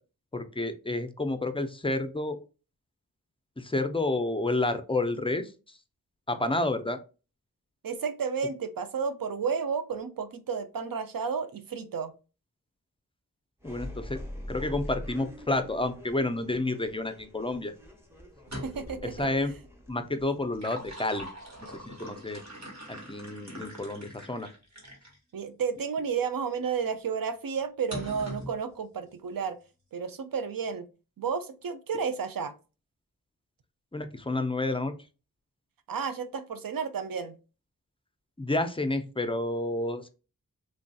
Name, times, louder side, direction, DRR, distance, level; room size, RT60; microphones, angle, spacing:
voice 1, 0.3-2.4 3.6-5.8 6.3-7.0 13.6-14.2 14.5-17.7 19.0-19.5 19.9-21.3 21.6-22.4 22.9-24.5 33.9-34.9 38.4-40.1, left 2 dB, 15° left, 0.4 m, -30 dB
voice 2, 7.8-12.1 18.6-19.3 25.3-29.6 29.9-30.9 31.2-32.5 35.9-37.3, right 6 dB, 70° right, 0.5 m, -32 dB
sound 1, 13.6-22.2, left 1 dB, 5° right, 0.8 m, -44 dB
sound 2, 18.3-19.0 20.3-25.2 25.8-25.9 27.9-28.6, equal, 50° right, 1.2 m, -42 dB
3.2 x 2.6 x 2.2 m
wide cardioid pair, 45°, 35 cm